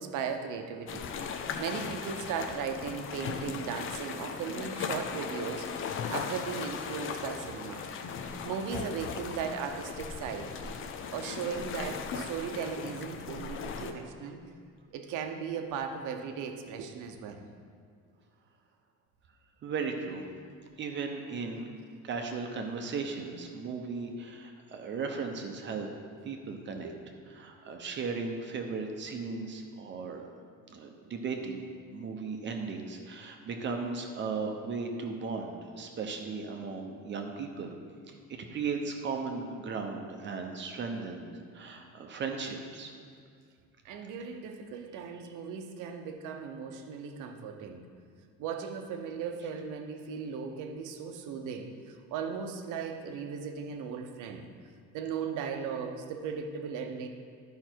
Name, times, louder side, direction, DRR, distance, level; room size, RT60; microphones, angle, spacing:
voice 1, 0.0-7.8 8.4-10.7 11.1-14.4 14.9-17.4 26.8-26.9 27.6-27.7 43.8-47.8 48.4-54.5 54.9-57.1, right 6 dB, 75° right, 5 dB, 0.9 m, -37 dB
sound 1, 0.9-13.9, left 6 dB, 40° left, 0.5 m, -38 dB
voice 2, 19.6-20.2 20.8-21.7 22.0-25.9 26.2-26.9 27.3-30.3 30.7-31.6 31.9-37.7 38.1-41.3 41.5-42.9, right 4 dB, 35° right, 3 dB, 0.8 m, -36 dB
11.5 x 5.6 x 4.5 m, 2.1 s
cardioid pair, 165°, 31 cm